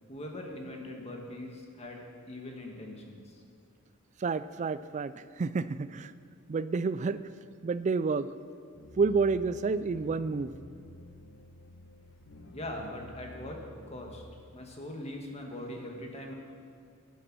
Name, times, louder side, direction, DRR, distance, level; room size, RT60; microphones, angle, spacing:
voice 1, 0.1-3.4 12.5-14.2 14.5-16.3, left 1 dB, 30° left, 1 dB, 1.6 m, -41 dB
voice 2, 4.2-6.1 6.5-7.2 7.6-8.3 9.0-10.5, right 4 dB, 35° right, 14 dB, 0.3 m, -29 dB
sound 1, 8.7-14.4, left 1 dB, 70° left, 1.3 m, -50 dB
11.0 x 10.0 x 6.1 m, 2.2 s
head